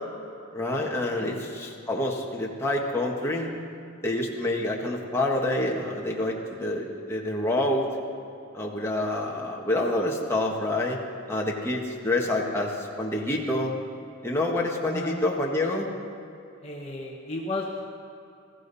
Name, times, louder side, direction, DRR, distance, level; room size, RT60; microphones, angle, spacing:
voice 1, 0.5-3.5 4.0-7.9 8.5-11.0 11.3-13.7 14.2-15.9, left 1 dB, 10° left, -2 dB, 1.6 m, -27 dB
voice 2, 16.6-17.8, left 2 dB, 30° left, -2 dB, 1.3 m, -33 dB
21.0 x 15.5 x 4.2 m, 2.7 s
head